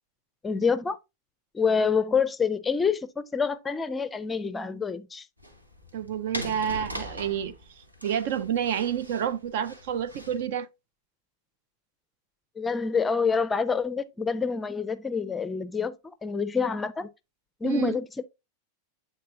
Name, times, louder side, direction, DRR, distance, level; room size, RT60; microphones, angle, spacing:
voice 1, 0.4-1.0 1.5-5.3 12.6-17.1 17.6-18.2, left 5 dB, 15° left, 0.5 m, -27 dB
sound 1, 5.4-10.5, equal, 85° right, 1.3 m, -41 dB
voice 2, 5.9-10.7 17.6-18.0, right 9 dB, 55° right, 0.6 m, -29 dB
8.6 x 3.9 x 3.6 m
figure-of-eight pair, 90°, 0 cm